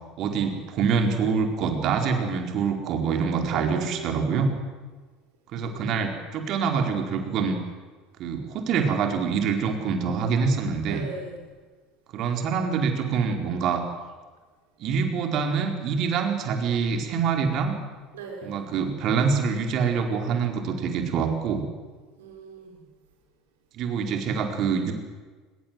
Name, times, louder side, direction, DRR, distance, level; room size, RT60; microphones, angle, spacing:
voice 1, 0.2-4.6 5.5-7.6 8.2-11.0 12.1-13.8 14.8-17.7 18.4-21.7 23.7-24.9, right 5 dB, 50° right, 5 dB, 4.6 m, -25 dB
voice 2, 3.5-4.4 5.6-6.0 10.8-11.4 18.1-18.7 22.2-22.8, right 3 dB, 75° right, 3 dB, 5.8 m, -39 dB
25.0 x 21.0 x 7.8 m, 1.4 s
hypercardioid pair, 70°, 0 cm